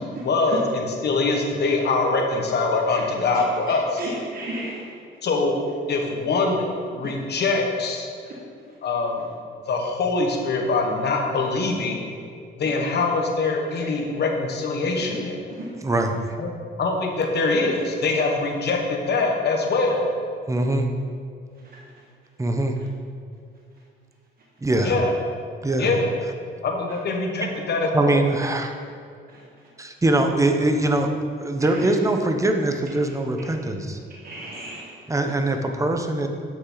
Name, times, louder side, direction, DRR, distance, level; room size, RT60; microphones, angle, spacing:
voice 1, 0.0-4.0 5.2-5.6 5.9-8.1 8.8-9.2 9.7-12.0 12.6-15.4 16.4-16.5 16.8-20.1 24.8-25.1 25.8-26.1 26.6-28.2, left 3 dB, 55° left, 1 dB, 1.4 m, -23 dB
voice 2, 4.0-4.8 8.2-8.4 15.6-15.7 21.6-21.8 29.3-29.4 31.6-31.9 34.2-34.9, right 2 dB, 50° right, -4 dB, 1.5 m, -34 dB
voice 3, 15.8-16.2 20.5-20.9 22.4-22.8 24.6-25.0 25.6-25.9 27.4-27.5 27.9-28.7 29.8-31.1 31.4-34.0 35.1-36.3, right 2 dB, 15° right, 4 dB, 0.8 m, -22 dB
8.5 x 6.5 x 3.9 m, 2.3 s
cardioid pair, 90°, 20 cm